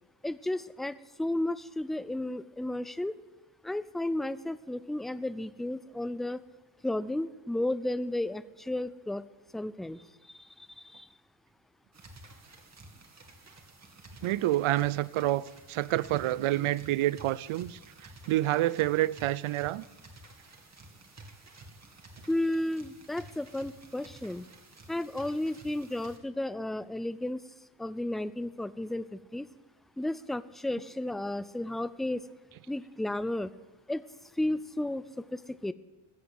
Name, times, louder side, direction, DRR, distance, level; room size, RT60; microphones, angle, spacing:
voice 1, 0.2-3.2 3.6-6.4 6.8-9.3 9.5-10.1 10.3-11.1 22.3-24.5 24.9-27.4 27.8-29.5 30.0-32.3 32.7-33.5 33.9-34.0 34.3-35.7, left 1 dB, ahead, 0.4 m, -33 dB
sound 1, 11.9-26.2, right 2 dB, 30° right, 2.5 m, -52 dB
voice 2, 14.2-19.8, right 15 dB, 75° right, 0.7 m, -28 dB
15.5 x 8.4 x 9.0 m
cardioid pair, 120°, 49 cm